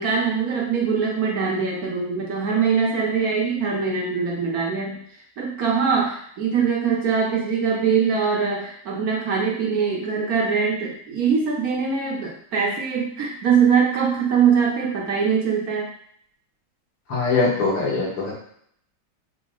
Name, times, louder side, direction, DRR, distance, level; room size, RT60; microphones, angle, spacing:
voice 1, 0.0-5.0 5.4-15.9, right 6 dB, 65° right, -3 dB, 0.9 m, -22 dB
voice 2, 17.1-18.3, left 3 dB, 80° left, -4 dB, 2.1 m, -22 dB
5.3 x 2.1 x 3.7 m, 0.65 s
omnidirectional pair, 2.3 m